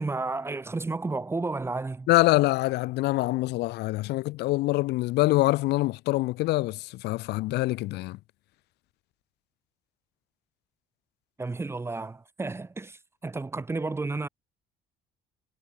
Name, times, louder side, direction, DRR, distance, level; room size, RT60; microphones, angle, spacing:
voice 1, 0.0-2.1 11.4-14.3, right 3 dB, 15° right, 0.7 m, -32 dB
voice 2, 2.1-8.2, left 19 dB, 80° left, 0.8 m, -25 dB
cardioid pair, 110°, 17 cm